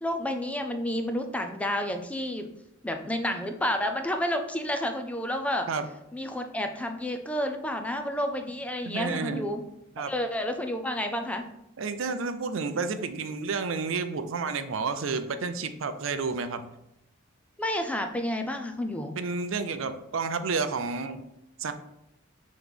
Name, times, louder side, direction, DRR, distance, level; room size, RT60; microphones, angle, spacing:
voice 1, 0.0-2.5 2.8-5.7 6.1-9.7 10.1-11.5 17.6-19.2, left 1 dB, 5° left, 5 dB, 0.4 m, -30 dB
voice 2, 8.8-9.5 10.0-10.1 11.8-16.7 19.2-21.2 21.6-21.7, right 4 dB, 75° right, 10 dB, 0.5 m, -30 dB
5.9 x 3.1 x 5.2 m, 0.83 s
head